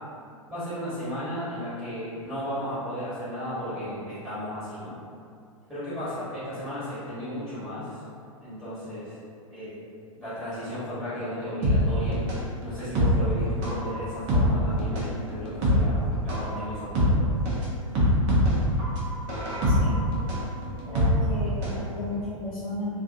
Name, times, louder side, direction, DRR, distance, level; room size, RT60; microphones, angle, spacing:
voice 1, 0.5-4.9 5.7-8.0 8.4-9.2 9.5-9.7 10.2-12.2 12.6-17.2, equal, 5° right, -15 dB, 1.1 m, -34 dB
sound 1, 11.6-21.8 22.1-22.2, equal, 35° right, 0.6 m, -24 dB
voice 2, 19.6-20.0 20.9-23.0, left 1 dB, 70° left, -9 dB, 0.6 m, -34 dB
2.4 x 2.1 x 2.6 m, 2.4 s
figure-of-eight pair, 100°, 18 cm